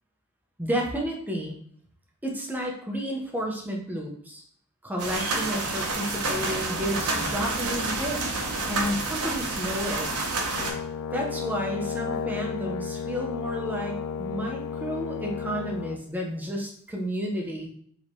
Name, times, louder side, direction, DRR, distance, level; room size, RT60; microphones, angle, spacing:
voice 1, 0.6-1.5 2.2-4.4 4.8-8.2 8.7-10.1 11.1-17.7, equal, 10° right, 0 dB, 0.6 m, -31 dB
sound 1, 5.0-10.7, right 3 dB, 85° right, 0.8 m, -29 dB
Brass instrument, 10.5-16.0, left 6 dB, 70° left, 0.3 m, -33 dB
3.0 x 2.8 x 4.4 m, 0.63 s
head